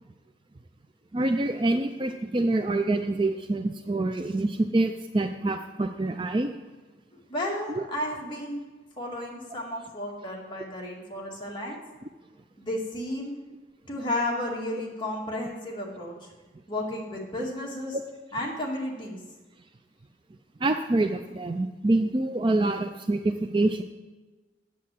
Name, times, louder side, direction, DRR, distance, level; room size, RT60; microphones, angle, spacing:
voice 1, 1.1-6.5 7.7-7.8 20.6-23.8, right 2 dB, 25° right, 6 dB, 0.4 m, -26 dB
voice 2, 7.1-8.6 9.0-11.8 12.6-13.3 13.9-16.3 16.7-18.0 18.3-19.2, left 1 dB, 25° left, -2 dB, 2.2 m, -33 dB
8.5 x 8.2 x 7.6 m, 1.2 s
head